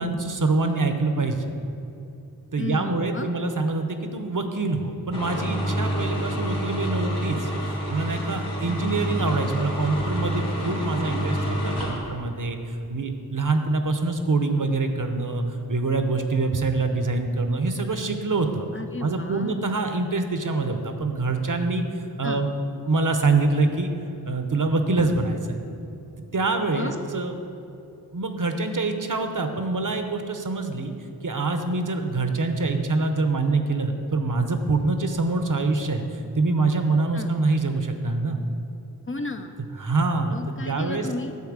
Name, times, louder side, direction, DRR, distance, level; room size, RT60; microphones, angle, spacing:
voice 1, 0.0-1.4 2.5-7.5 7.9-18.7 19.0-21.8 22.2-23.9 24.3-25.6 26.3-27.3 28.1-30.9 31.2-38.4 39.8-40.4 40.7-41.1, right 3 dB, 55° right, 6 dB, 0.8 m, -25 dB
voice 2, 2.6-3.3 8.6-8.9 18.7-19.7 22.2-22.5 26.7-27.1 37.1-37.4 39.1-39.6 40.3-41.4, left 3 dB, 35° left, 6 dB, 0.6 m, -34 dB
sound 1, 5.1-12.0, right 1 dB, 75° left, 2.3 m, -28 dB
9.5 x 4.4 x 7.4 m, 2.7 s
wide cardioid pair, 40°, 38 cm